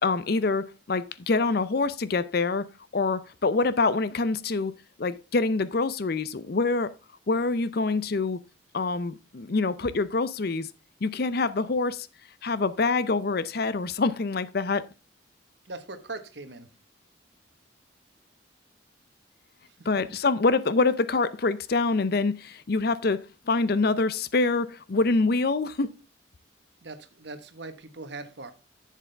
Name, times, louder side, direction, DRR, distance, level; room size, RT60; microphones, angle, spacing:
voice 1, 0.0-2.7 2.9-4.7 5.0-6.9 7.3-8.4 8.7-10.7 11.0-12.1 12.4-14.8 19.9-25.9, left 3 dB, 50° left, 0.6 m, -25 dB
voice 2, 15.6-16.7 19.6-19.9 26.8-28.5, right 3 dB, 60° right, 1.3 m, -40 dB
11.0 x 7.4 x 3.4 m
head